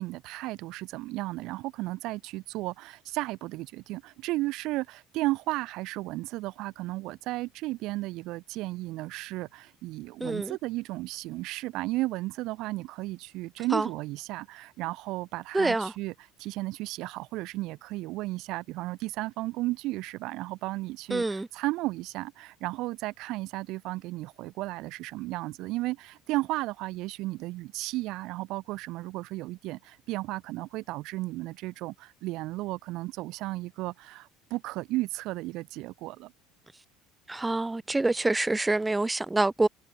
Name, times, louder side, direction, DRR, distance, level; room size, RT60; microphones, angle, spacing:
voice 1, 0.0-16.1 16.4-36.3, right 19 dB, 65° right, 5.9 m, -34 dB
voice 2, 10.2-10.6 13.7-13.9 15.5-15.9 21.1-21.5 37.3-39.7, right 2 dB, 10° right, 4.6 m, -26 dB
hypercardioid pair, 80°, 0 cm